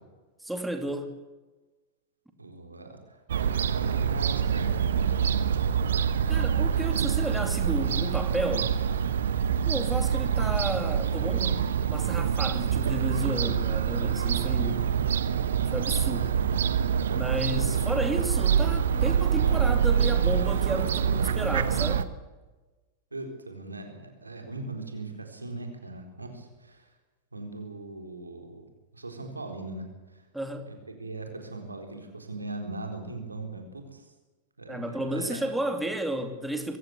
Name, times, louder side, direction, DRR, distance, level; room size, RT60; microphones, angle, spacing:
voice 1, 0.4-1.2 6.3-8.8 9.7-14.9 15.7-16.3 17.1-22.1 30.3-30.7 34.7-36.8, right 1 dB, 5° right, 6 dB, 2.5 m, -32 dB
voice 2, 2.4-5.7 23.1-26.9 27.3-28.6 28.9-30.2 30.7-34.0 34.6-35.5, right 2 dB, 80° right, 4 dB, 4.0 m, -40 dB
Fowl / Gull seagull, 3.3-22.0, right 7 dB, 65° right, 1.1 m, -25 dB
23.5 x 15.5 x 8.2 m, 1.2 s
figure-of-eight pair, 90°, 0 cm